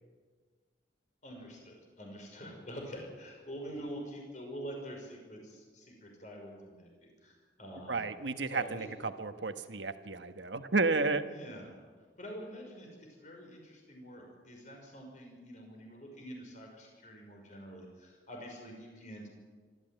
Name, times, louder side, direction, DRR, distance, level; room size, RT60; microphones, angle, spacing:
voice 1, 1.2-8.0 8.5-8.9 11.3-11.8 12.2-19.3, equal, 45° left, 1 dB, 5.9 m, -46 dB
voice 2, 7.9-11.3, right 3 dB, 90° right, 8 dB, 1.4 m, -32 dB
24.5 x 14.5 x 9.2 m, 1.5 s
head